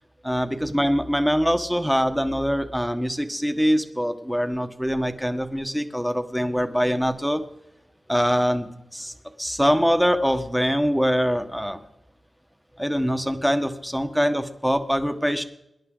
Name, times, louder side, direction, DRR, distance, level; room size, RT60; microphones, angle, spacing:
voice 1, 0.2-7.4 8.1-11.8 12.8-15.4, equal, ahead, 8 dB, 1.3 m, -23 dB
23.5 x 11.0 x 3.9 m, 0.84 s
wide cardioid pair, 85°, 0 cm